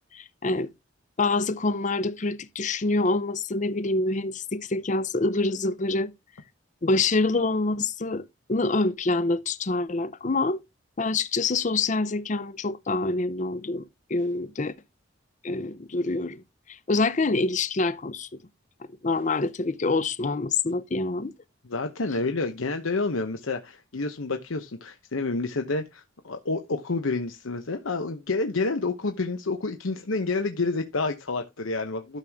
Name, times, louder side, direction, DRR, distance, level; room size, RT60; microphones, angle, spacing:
voice 1, 0.1-0.7 1.2-6.1 6.8-8.2 8.5-10.6 11.0-13.8 14.1-14.7 15.4-16.4 16.7-18.3 19.0-21.3, left 3 dB, 40° left, 0.6 m, -26 dB
voice 2, 21.6-32.2, left 3 dB, 85° left, 0.9 m, -29 dB
12.5 x 6.2 x 3.5 m
head